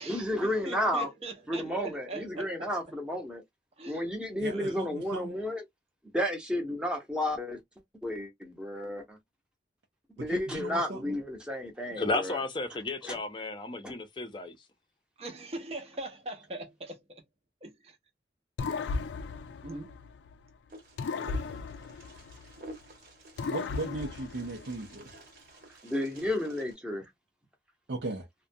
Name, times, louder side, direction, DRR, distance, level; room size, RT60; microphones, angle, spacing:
voice 1, 0.1-1.1 1.5-3.4 3.9-5.6 6.1-7.6 8.0-9.2 10.2-12.4 13.0-13.2 13.8-13.9 25.8-27.1, left 1 dB, 5° right, 0.8 m, -32 dB
voice 2, 0.6-2.7 3.8-4.1 4.5-4.9 15.2-17.2 17.6-18.0 19.6-20.0, right 2 dB, 35° right, 0.6 m, -41 dB
voice 3, 4.4-5.3 10.2-11.2 23.4-25.1 27.9-28.3, right 2 dB, 80° right, 0.6 m, -37 dB
voice 4, 12.0-14.6, left 2 dB, 25° left, 0.5 m, -33 dB
sound 1, 18.6-20.5 21.0-22.9 23.4-25.1, left 4 dB, 90° left, 0.4 m, -36 dB
Wind, 20.7-26.7, right 1 dB, 55° right, 1.0 m, -51 dB
2.4 x 2.2 x 2.6 m
head